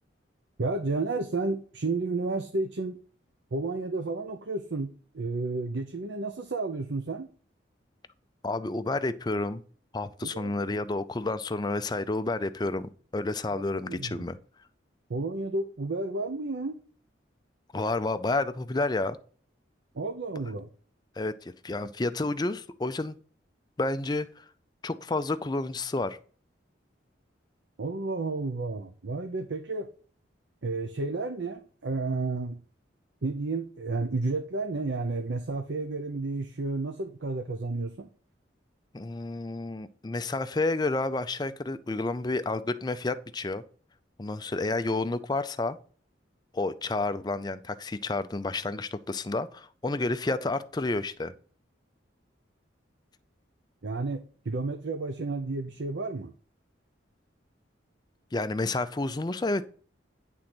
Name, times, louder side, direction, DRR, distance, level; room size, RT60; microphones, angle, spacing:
voice 1, 0.6-3.0 3.5-7.3 10.2-10.5 13.5-14.3 15.1-16.8 19.9-20.7 27.8-29.9 30.6-32.6 33.2-38.1 53.8-56.3, right 3 dB, 70° right, 0.7 m, -31 dB
voice 2, 8.4-9.6 9.9-14.4 17.7-19.2 21.2-23.2 23.8-24.4 24.8-26.2 38.9-43.6 44.2-45.8 46.5-51.3 58.3-59.6, left 2 dB, 20° left, 0.4 m, -30 dB
9.9 x 3.8 x 6.0 m
head